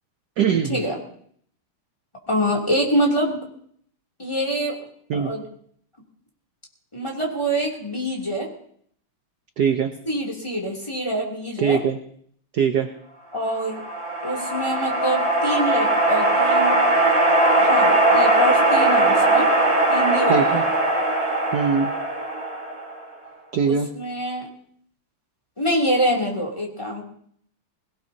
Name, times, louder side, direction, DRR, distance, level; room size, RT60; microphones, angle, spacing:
voice 1, 0.4-0.8 5.1-5.3 9.6-9.9 11.6-12.0 12.5-12.9 20.3-20.6 21.5-21.9 23.5-23.9, right 7 dB, 60° right, 7 dB, 1.1 m, -21 dB
voice 2, 2.3-3.4 4.2-4.7 5.1-5.4 6.9-8.5 10.1-11.8 13.3-13.8 14.2-16.8 17.6-19.5 19.9-20.6 23.6-24.5 25.6-27.0, equal, 10° left, -1 dB, 3.0 m, -25 dB
sound 1, 13.5-23.0, right 2 dB, 35° right, 3.8 m, -20 dB
20.5 x 18.0 x 2.9 m, 0.63 s
omnidirectional pair, 2.4 m